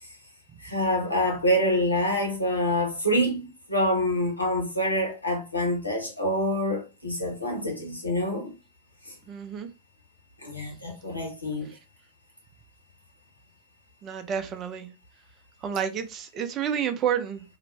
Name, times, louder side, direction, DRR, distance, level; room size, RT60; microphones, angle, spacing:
voice 1, 0.6-8.5 9.1-9.2 10.4-11.7, equal, 85° left, 0.9 m, -26 dB
voice 2, 9.3-9.7 14.0-14.9 15.6-17.4, right 8 dB, 30° right, 0.4 m, -29 dB
2.4 x 2.0 x 3.1 m
figure-of-eight pair, 90°, 0 cm